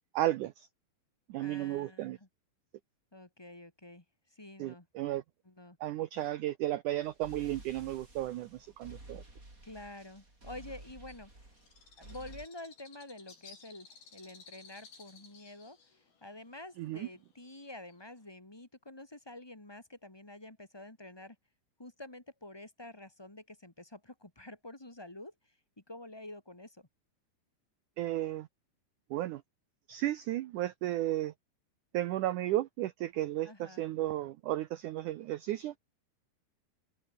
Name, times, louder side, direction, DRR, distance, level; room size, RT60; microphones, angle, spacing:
voice 1, 0.1-0.7 1.3-2.2 4.6-5.2 5.8-9.2 16.8-17.1 28.0-28.5 29.1-29.4 29.9-31.3 31.9-35.7, right 14 dB, 90° right, 1.7 m, -34 dB
voice 2, 1.4-2.3 3.1-4.0 4.3-4.9 5.4-5.8 6.1-6.4 9.6-11.5 12.0-15.8 16.2-21.3 21.8-25.5 25.9-26.9 33.4-33.8, left 1 dB, 15° left, 1.0 m, -49 dB
sound 1, 7.0-12.5, right 2 dB, 20° right, 6.9 m, -52 dB
Bird, 11.1-18.3, left 5 dB, 70° left, 7.9 m, -57 dB
omnidirectional pair, 4.7 m